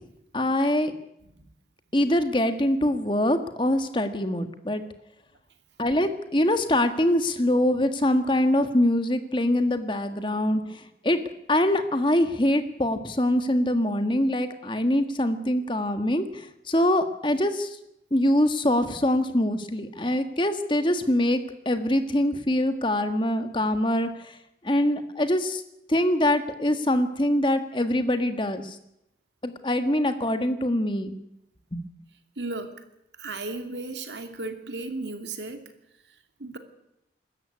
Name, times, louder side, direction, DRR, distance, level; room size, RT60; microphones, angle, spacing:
voice 1, 0.3-0.9 1.9-4.8 5.8-11.2 11.5-17.8 18.1-24.4 24.6-25.6 25.9-28.8 29.4-31.1 31.7-31.8, left 1 dB, 25° left, 8 dB, 1.6 m, -24 dB
voice 2, 32.4-32.7 33.2-35.7 36.4-36.6, right 2 dB, 85° right, 6 dB, 2.7 m, -34 dB
22.5 x 13.5 x 9.6 m, 0.83 s
head